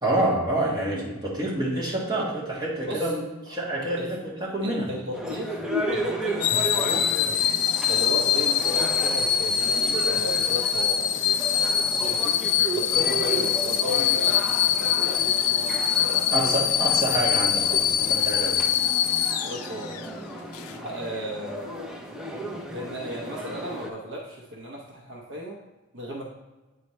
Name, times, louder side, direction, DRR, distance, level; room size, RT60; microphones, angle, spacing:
voice 1, 0.0-4.9 16.3-18.6, right 1 dB, 20° right, -6 dB, 1.5 m, -27 dB
voice 2, 4.6-5.6 5.9-7.1 7.9-11.1 12.0-12.3 12.7-16.6 19.4-20.0 20.8-22.0 22.7-25.6 25.9-26.2, equal, 55° right, -2 dB, 0.8 m, -35 dB
sound 1, 5.1-23.9, right 1 dB, 5° right, 0.5 m, -34 dB
sound 2, 6.4-20.1 20.5-20.7, left 9 dB, 85° left, 0.4 m, -24 dB
8.3 x 4.3 x 3.2 m, 1.1 s
head